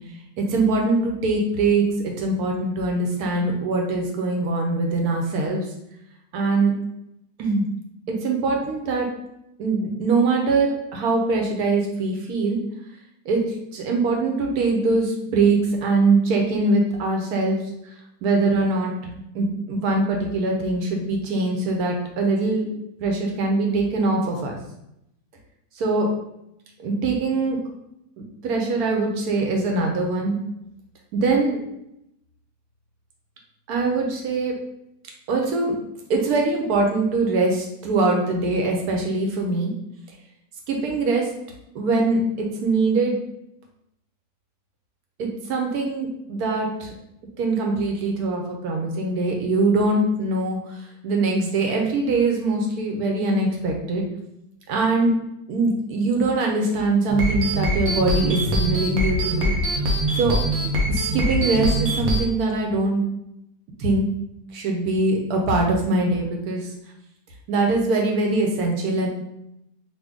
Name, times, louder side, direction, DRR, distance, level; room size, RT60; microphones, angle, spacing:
voice 1, 0.4-5.6 6.3-6.7 7.4-7.7 8.1-9.1 9.6-12.6 13.2-17.6 18.2-22.7 23.0-24.6 25.8-26.1 26.8-27.6 28.4-30.4 31.1-31.6 33.7-34.6 35.3-35.7 36.1-39.7 40.7-41.3 41.7-43.2 45.2-46.9 47.4-50.6 51.0-54.1 54.7-55.1 55.5-59.5 60.2-60.4 60.9-63.0 63.8-64.1 64.5-66.7 67.5-69.1, right 3 dB, 90° right, 1 dB, 1.2 m, -22 dB
sound 1, 57.1-62.2, equal, 60° right, 0.8 m, -23 dB
2.8 x 2.6 x 3.5 m, 0.81 s
omnidirectional pair, 1.6 m